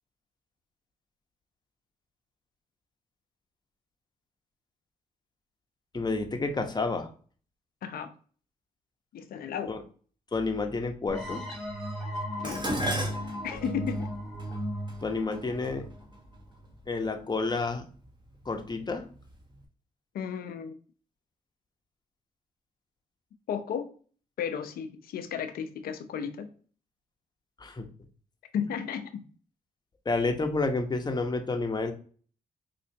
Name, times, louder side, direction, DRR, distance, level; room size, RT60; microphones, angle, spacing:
voice 1, 5.9-7.1 9.7-9.8 10.3-11.4 12.6-12.8 15.0-15.9 16.9-17.9 18.5-19.0 27.6-27.9 30.0-31.9, left 3 dB, 25° left, 4 dB, 0.8 m, -30 dB
voice 2, 7.8-8.1 9.1-9.8 12.4-12.7 13.4-14.1 20.1-20.8 23.5-23.9 24.4-26.5 28.5-29.2, left 7 dB, 75° left, 9 dB, 0.6 m, -34 dB
sound 1, 11.1-16.6, equal, ahead, 1.5 m, -36 dB
Dishes pots and pans, 12.4-16.8 17.7-18.1 18.5-19.3 19.6-19.7, equal, 30° right, 1.2 m, -36 dB
4.3 x 2.5 x 2.7 m, 0.42 s
supercardioid pair, 55°, 16 cm